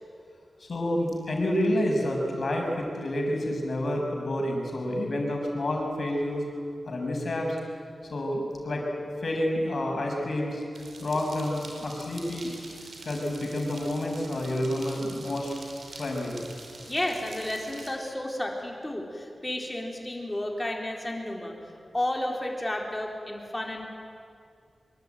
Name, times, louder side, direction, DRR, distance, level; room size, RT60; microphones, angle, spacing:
voice 1, 0.6-6.4 6.8-7.6 8.1-10.6 11.0-12.5 13.0-15.5 16.0-16.4, left 1 dB, 55° left, 1 dB, 5.9 m, -29 dB
sound 1, 10.7-17.9, right 2 dB, 80° right, 4.9 m, -46 dB
voice 2, 16.8-21.6 21.9-23.8, left 1 dB, 15° left, 1 dB, 4.0 m, -32 dB
24.5 x 23.5 x 9.2 m, 2.3 s
wide cardioid pair, 145°, 0 cm